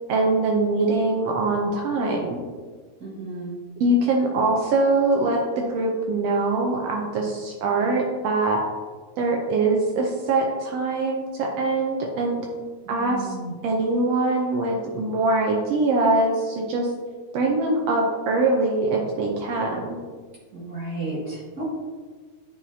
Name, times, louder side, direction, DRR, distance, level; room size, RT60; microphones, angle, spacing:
voice 1, 0.1-2.4 3.8-8.6 9.2-12.4 12.9-13.3 13.6-16.9 17.3-20.0, right 2 dB, 85° right, 0 dB, 1.4 m, -23 dB
voice 2, 3.0-3.6 12.8-13.5 20.5-21.7, right 2 dB, 40° right, -7 dB, 1.6 m, -33 dB
9.7 x 4.7 x 2.7 m, 1.5 s
omnidirectional pair, 3.7 m